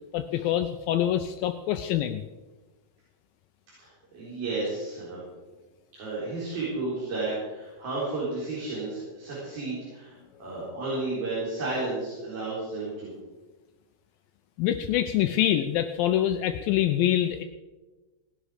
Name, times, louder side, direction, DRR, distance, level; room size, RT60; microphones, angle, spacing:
voice 1, 0.1-2.2 14.6-17.4, left 11 dB, 80° left, 8 dB, 2.1 m, -25 dB
voice 2, 4.1-5.2 5.9-10.1 10.4-13.2, right 2 dB, 65° right, -8 dB, 6.0 m, -32 dB
18.5 x 11.0 x 5.1 m, 1.2 s
omnidirectional pair, 4.6 m